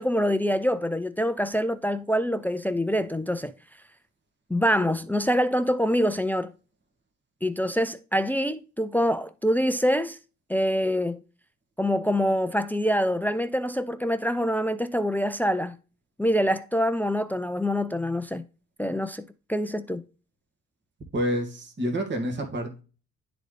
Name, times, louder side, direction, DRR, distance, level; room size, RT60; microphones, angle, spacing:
voice 1, 0.0-3.5 4.5-6.5 7.4-10.2 10.5-11.2 11.8-15.7 16.2-18.4 18.8-20.0, equal, 5° left, 0.5 m, -25 dB
voice 2, 21.1-22.8, equal, 35° right, 2.0 m, -28 dB
11.5 x 4.0 x 3.3 m
cardioid pair, 90°, 30 cm